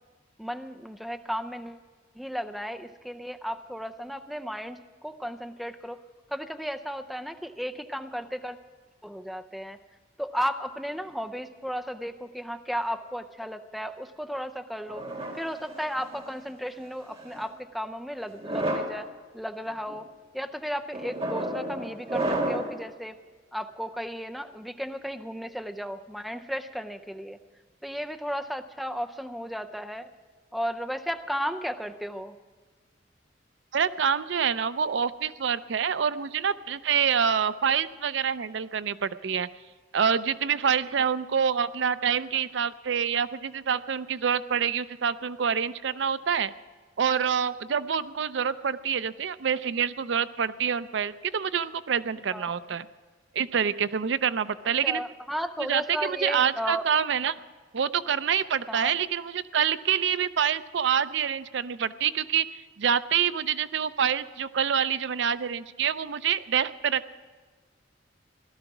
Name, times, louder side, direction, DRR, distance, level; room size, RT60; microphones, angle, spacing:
voice 1, 0.4-1.8 2.2-6.0 6.3-8.6 9.0-9.8 10.2-15.0 15.3-19.1 19.3-20.0 20.3-23.2 23.5-27.4 27.8-30.1 30.5-32.3 52.3-52.5 54.8-56.8 58.7-58.9, equal, ahead, 8 dB, 0.5 m, -34 dB
sound 1, 14.9-16.3 17.1-17.5 18.3-19.0 19.7-20.0 20.9-22.8, right 1 dB, 30° right, 1.7 m, -31 dB
voice 2, 33.7-39.5 39.9-46.5 47.0-52.9 53.3-55.0 55.6-57.3 57.7-62.5 62.8-67.1, right 7 dB, 65° right, 14 dB, 0.5 m, -26 dB
17.0 x 12.5 x 6.0 m, 1.4 s
head